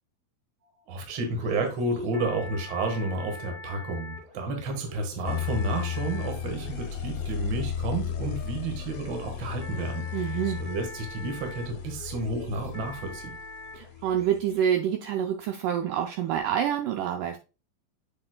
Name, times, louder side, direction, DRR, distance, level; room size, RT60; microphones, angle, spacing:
sound 1, 0.6-16.4, left 3 dB, 30° right, 2.5 m, -46 dB
voice 1, 0.9-10.3 10.6-13.3, right 2 dB, 60° right, 4 dB, 1.2 m, -31 dB
sound 2, 5.2-14.4, left 9 dB, 80° left, 1.9 m, -35 dB
voice 2, 10.1-10.6 13.7-17.4, right 9 dB, 80° right, 4 dB, 1.9 m, -27 dB
7.5 x 6.3 x 2.2 m, 0.32 s
omnidirectional pair, 4.3 m